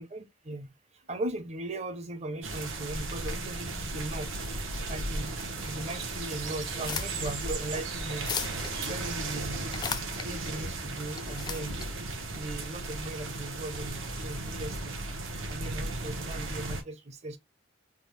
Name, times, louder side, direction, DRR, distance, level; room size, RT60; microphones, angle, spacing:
voice 1, 0.0-4.4 4.9-8.3 8.9-9.8 10.2-11.8 12.3-15.0 15.5-17.4, right 2 dB, 35° right, 0.6 m, -38 dB
sound 1, 2.4-16.8, right 2 dB, 90° right, 1.1 m, -36 dB
sound 2, 4.2-10.5, right 7 dB, 65° right, 1.0 m, -47 dB
sound 3, 6.7-13.1, left 6 dB, 20° left, 0.3 m, -39 dB
3.6 x 2.3 x 3.1 m
head